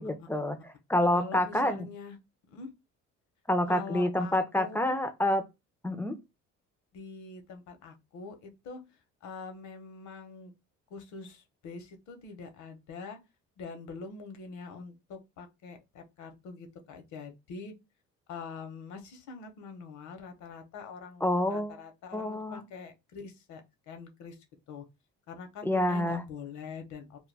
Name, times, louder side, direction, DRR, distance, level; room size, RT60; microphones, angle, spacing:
voice 1, 0.0-1.9 3.5-5.4 5.8-6.2 21.2-21.7 22.1-22.6 25.6-26.2, left 1 dB, 10° left, 0.3 m, -28 dB
voice 2, 1.1-2.2 2.5-2.7 3.7-5.0 6.9-8.8 9.2-10.5 10.9-13.2 13.6-17.7 18.3-24.4 24.7-24.8 25.3-27.3, left 5 dB, 80° left, 0.7 m, -44 dB
2.2 x 2.2 x 3.2 m
cardioid pair, 105°, 29 cm